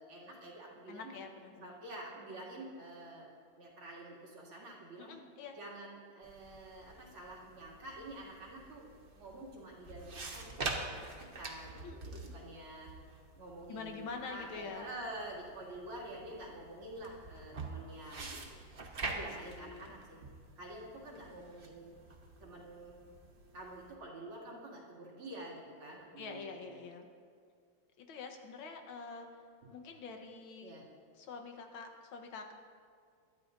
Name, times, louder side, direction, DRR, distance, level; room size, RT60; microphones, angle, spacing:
voice 1, 0.0-1.1 1.6-3.3 3.6-5.2 5.6-8.9 9.1-12.9 13.4-20.2 20.6-22.0 22.4-23.0 23.5-26.8 29.6-29.8 30.6-30.8, right 1 dB, 85° right, -5 dB, 3.4 m, -48 dB
voice 2, 0.9-1.7 5.0-5.5 11.8-12.3 13.7-14.9 19.0-19.9 26.2-27.1 28.0-29.3 29.7-30.7 31.2-32.5, left 4 dB, 80° left, 4 dB, 1.9 m, -46 dB
sound 1, 6.2-23.9, right 3 dB, 35° right, 0.9 m, -46 dB
22.0 x 12.0 x 2.6 m, 2.1 s
omnidirectional pair, 2.2 m